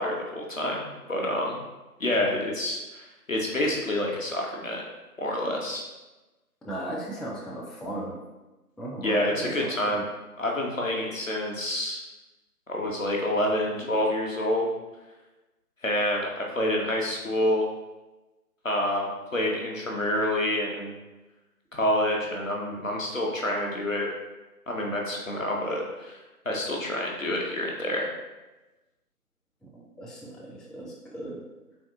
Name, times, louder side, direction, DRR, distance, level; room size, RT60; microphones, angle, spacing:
voice 1, 0.0-1.6 2.0-4.8 5.2-5.9 9.0-10.0 10.4-12.0 12.7-14.7 15.8-17.6 18.6-20.9 21.7-24.1 24.7-28.1, left 1 dB, 55° left, -1 dB, 0.7 m, -28 dB
voice 2, 6.6-8.2 8.8-10.0 29.6-31.4, right 1 dB, ahead, -5 dB, 0.3 m, -37 dB
3.4 x 2.8 x 2.6 m, 1.1 s
figure-of-eight pair, 170°, 47 cm